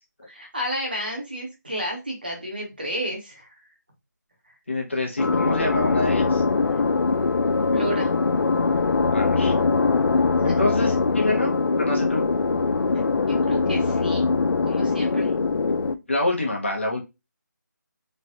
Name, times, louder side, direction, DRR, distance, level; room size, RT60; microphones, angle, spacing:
voice 1, 0.3-3.6 7.5-8.1 10.4-10.5 13.3-14.3 14.6-15.3, equal, 30° right, 1 dB, 0.7 m, -31 dB
voice 2, 4.7-6.4 9.1-9.5 10.4-12.2 15.0-15.1 16.1-17.0, left 2 dB, 40° left, 0 dB, 0.8 m, -26 dB
sound 1, 5.2-16.0, left 4 dB, 90° left, 0.4 m, -22 dB
3.2 x 2.2 x 2.7 m, 0.24 s
figure-of-eight pair, 180°, 10 cm